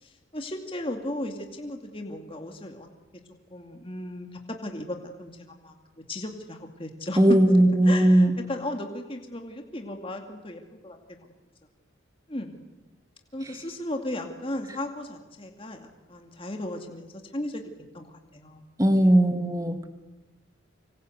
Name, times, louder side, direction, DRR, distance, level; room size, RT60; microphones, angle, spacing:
voice 1, 0.0-2.9 3.5-5.7 6.1-7.2 7.9-11.0 12.3-12.6 13.3-18.6 18.9-19.1, left 1 dB, 25° left, 3 dB, 2.4 m, -36 dB
voice 2, 7.2-8.4 18.8-19.9, right 1 dB, 15° right, 7 dB, 1.7 m, -19 dB
26.0 x 25.0 x 8.1 m, 1.1 s
head